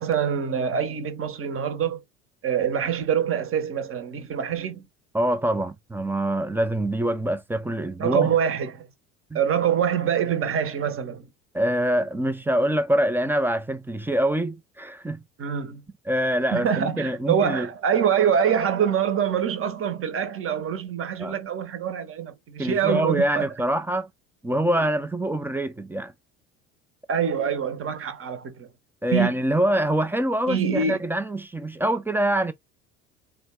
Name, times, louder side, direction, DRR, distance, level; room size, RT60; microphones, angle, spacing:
voice 1, 0.0-2.0 2.4-4.9 8.0-8.9 9.3-11.3 15.4-15.8 16.5-23.5 27.1-28.7 29.1-29.3 30.5-31.0, right 8 dB, 35° right, 1.0 m, -25 dB
voice 2, 5.1-8.4 9.3-9.4 11.5-15.2 16.1-17.7 21.2-21.3 22.6-24.1 24.4-26.1 29.0-32.5, right 1 dB, 5° right, 0.4 m, -25 dB
4.0 x 2.3 x 3.5 m
figure-of-eight pair, 65°, 40 cm